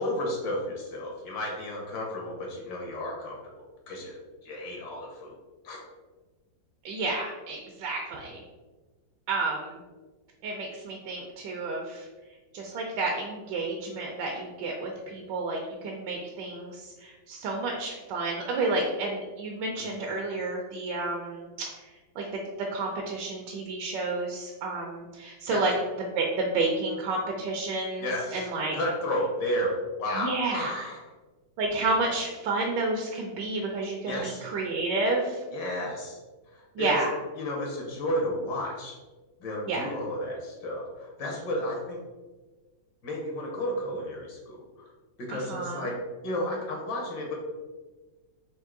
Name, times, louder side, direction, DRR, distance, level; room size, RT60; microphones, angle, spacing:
voice 1, 0.0-3.3 3.9-4.2 4.4-5.3 5.6-5.8 25.5-25.6 28.0-28.5 28.7-31.0 34.1-34.4 35.5-36.2 36.5-36.9 37.4-39.0 39.4-42.0 43.0-44.6 45.3-45.9 46.2-47.4, left 1 dB, 70° left, -1 dB, 1.6 m, -32 dB
voice 2, 6.8-8.4 9.3-9.8 10.4-12.1 12.5-21.5 22.2-22.3 22.7-25.7 26.2-28.1 28.3-28.8 30.1-30.9 31.6-35.4 36.8-37.2 39.7-39.9 45.3-45.9, right 3 dB, 75° right, 0 dB, 1.2 m, -30 dB
4.6 x 2.8 x 3.6 m, 1.3 s
omnidirectional pair, 2.1 m